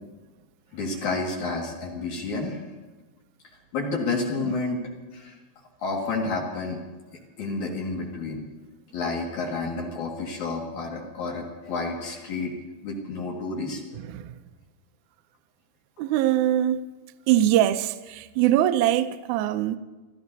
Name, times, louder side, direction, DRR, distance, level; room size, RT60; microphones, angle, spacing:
voice 1, 0.7-2.6 3.7-5.3 5.8-6.8 7.4-8.4 8.9-12.5 12.8-13.8, left 3 dB, 60° left, 3.2 m, -30 dB
voice 2, 16.0-16.8 17.3-19.8, right 12 dB, 85° right, 1.7 m, -22 dB
29.0 x 14.0 x 2.7 m
omnidirectional pair, 4.1 m